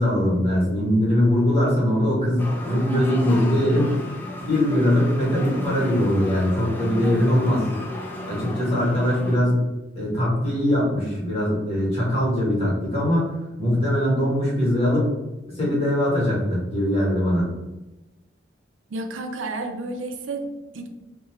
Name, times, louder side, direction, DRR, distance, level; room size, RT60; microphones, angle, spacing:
voice 1, 0.0-3.9 4.4-7.7 8.3-9.6 10.0-13.3 13.6-15.1 15.5-17.5, left 1 dB, 30° left, -6 dB, 1.1 m, -21 dB
sound 1, 2.4-9.4, left 1 dB, 10° left, 0.3 m, -34 dB
voice 2, 18.9-20.9, right 2 dB, 85° right, 4 dB, 0.4 m, -31 dB
2.4 x 2.2 x 2.9 m, 1.0 s
head